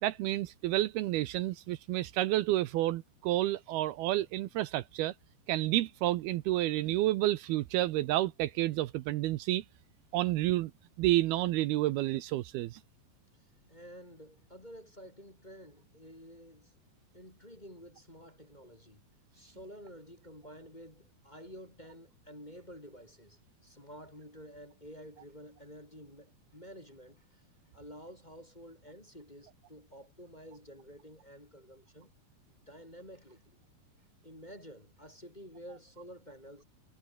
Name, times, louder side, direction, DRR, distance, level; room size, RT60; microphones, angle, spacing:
voice 1, 0.0-5.1 5.5-9.6 10.1-10.7 11.0-12.8, right 15 dB, 75° right, 2.6 m, -30 dB
voice 2, 13.4-16.7 17.1-19.0 19.3-27.4 27.7-32.1 32.7-33.6 34.2-36.6, equal, 10° left, 3.4 m, -51 dB
omnidirectional pair, 4.9 m